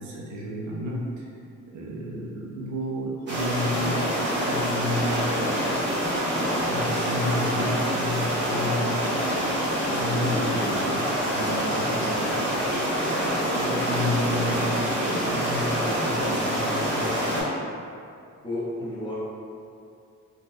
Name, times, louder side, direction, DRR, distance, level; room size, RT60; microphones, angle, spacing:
voice 1, 0.0-1.3 1.7-5.8 6.6-13.1 13.5-17.6, left 1 dB, 70° right, -4 dB, 0.7 m, -32 dB
sound 1, 3.3-17.4, equal, 35° right, 1.1 m, -26 dB
voice 2, 18.4-19.1, left 1 dB, 15° left, -9 dB, 0.8 m, -31 dB
4.1 x 2.2 x 2.4 m, 2.4 s
wide cardioid pair, 140°, 31 cm